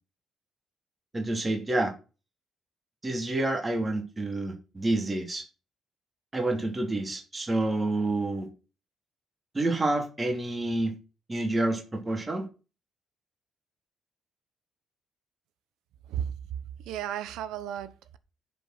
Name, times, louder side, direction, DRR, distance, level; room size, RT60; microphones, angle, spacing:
voice 1, 1.1-1.9 3.0-5.4 6.3-8.5 9.5-11.0 11.3-12.5, right 2 dB, 20° right, 2.8 m, -28 dB
voice 2, 16.9-18.2, right 10 dB, 90° right, 0.9 m, -34 dB
10.5 x 5.3 x 6.2 m
cardioid pair, 90°, 0 cm